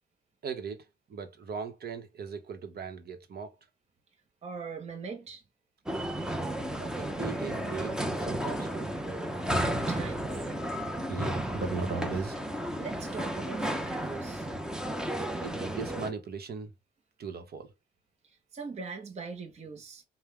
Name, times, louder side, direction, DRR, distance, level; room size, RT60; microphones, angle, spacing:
voice 1, 0.4-3.6 6.7-8.9 11.1-12.4 15.3-16.7 17.2-17.7, right 5 dB, 50° right, 1.0 m, -38 dB
voice 2, 4.4-5.4 9.5-10.5 12.8-14.5 18.2-20.0, right 5 dB, 35° right, 0.8 m, -41 dB
sound 1, 5.9-16.1, right 1 dB, 5° right, 0.7 m, -33 dB
5.4 x 2.2 x 3.3 m
cardioid pair, 90°, 20 cm